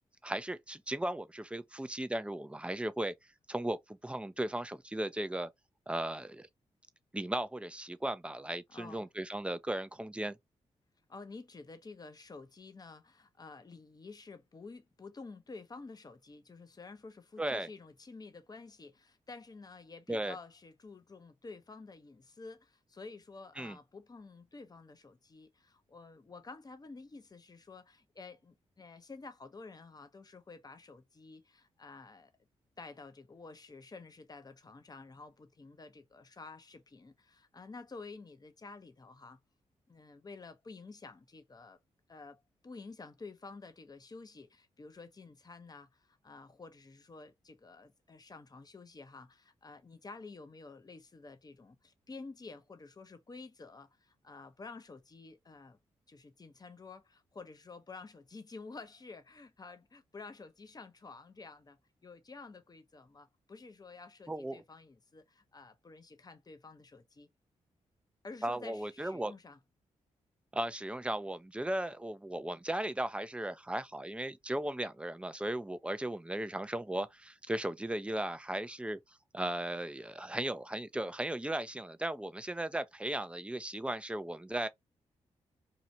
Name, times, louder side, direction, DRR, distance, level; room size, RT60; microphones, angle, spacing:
voice 1, 0.2-3.1 3.5-5.5 5.9-6.5 7.1-10.4 17.4-17.7 20.1-20.4 23.6-23.8 64.3-64.6 68.4-69.3 70.5-79.0 79.3-84.7, right 1 dB, 10° right, 0.5 m, -36 dB
voice 2, 8.7-9.1 11.1-32.3 32.8-39.4 39.9-41.8 42.1-55.8 56.1-67.3 68.2-69.6, left 3 dB, 30° left, 0.7 m, -50 dB
2.8 x 2.4 x 2.9 m
hypercardioid pair, 40°, 14 cm